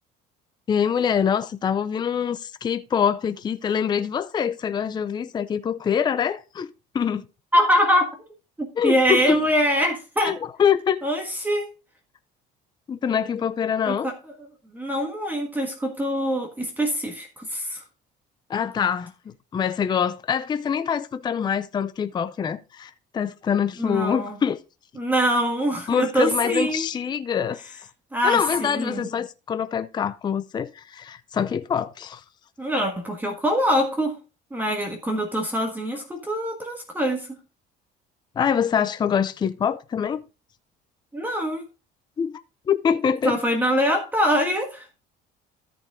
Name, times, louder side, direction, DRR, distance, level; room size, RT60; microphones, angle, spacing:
voice 1, 0.7-6.7 6.9-7.2 8.8-9.4 10.2-11.0 12.9-14.1 18.5-19.1 19.5-24.6 25.9-27.6 28.2-32.2 38.4-40.2 42.2-42.4 42.7-43.4, left 7 dB, 25° left, 0.5 m, -24 dB
voice 2, 7.5-8.1 8.6-10.3 11.0-11.7 13.9-14.1 14.7-17.8 23.8-24.4 24.9-26.9 28.1-29.1 32.6-34.1 34.5-37.4 41.1-41.6 43.2-45.0, equal, 10° right, 1.6 m, -24 dB
13.5 x 5.2 x 3.6 m
cardioid pair, 140°, 18 cm